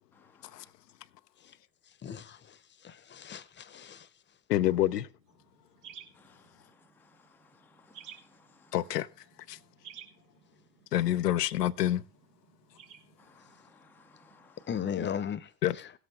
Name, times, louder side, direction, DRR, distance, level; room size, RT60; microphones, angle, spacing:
voice 1, 0.1-0.7 6.1-8.7 13.2-14.7, left 5 dB, 5° left, 0.5 m, -62 dB
voice 2, 2.0-4.1 14.7-15.9, left 8 dB, 25° left, 0.8 m, -37 dB
voice 3, 4.5-5.1 8.7-9.1 9.5-9.6 10.9-12.0 15.6-15.7, left 13 dB, 85° left, 0.6 m, -27 dB
sound 1, 5.2-14.5, right 8 dB, 70° right, 1.7 m, -55 dB
17.0 x 7.8 x 3.5 m
hypercardioid pair, 75°, 47 cm